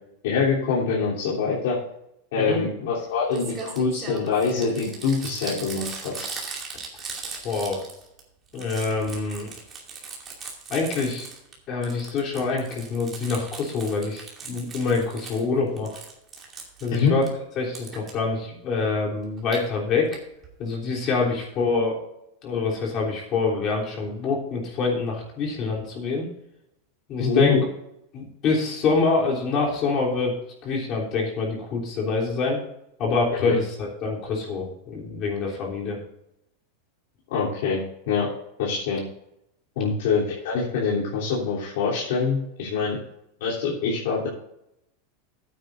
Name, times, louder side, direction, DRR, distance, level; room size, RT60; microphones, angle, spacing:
voice 1, 0.2-1.8 2.3-6.4 16.9-17.2 27.2-27.6 33.4-33.6 37.3-38.3 38.6-39.0 39.7-43.0 43.4-44.3, left 5 dB, 65° left, -7 dB, 3.3 m, -24 dB
Crumpling crinkling, 3.0-3.1 3.3-8.2 8.5-11.5 11.8-15.4 15.8-17.3 17.7-18.1 19.2-19.6 20.1-20.2 20.4-20.5 20.7-20.8, right 4 dB, 20° right, 2.5 m, -38 dB
voice 2, 7.4-7.8 8.5-9.5 10.7-11.3 11.7-15.9 16.8-17.2 17.6-20.2 20.6-22.0 22.4-26.2 27.1-27.6 28.1-30.4 30.6-32.6 33.0-36.0, left 4 dB, 30° left, -2 dB, 3.3 m, -26 dB
15.5 x 9.3 x 2.6 m, 0.80 s
supercardioid pair, 165°, 0 cm